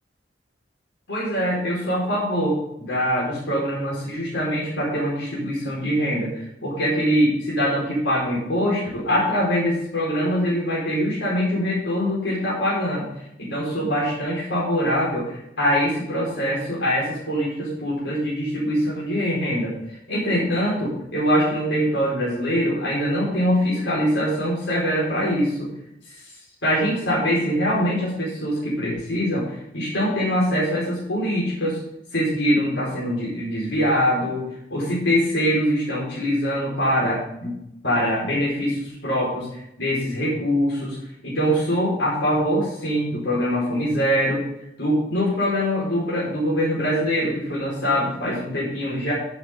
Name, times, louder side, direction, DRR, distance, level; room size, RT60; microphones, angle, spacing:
voice 1, 1.1-13.1 13.4-25.7 26.0-26.2 26.6-31.8 32.1-34.4 34.7-37.6 37.8-41.0 41.2-44.5 44.8-49.1, equal, 90° left, -6 dB, 4.9 m, -23 dB
14.5 x 7.3 x 3.8 m, 0.81 s
head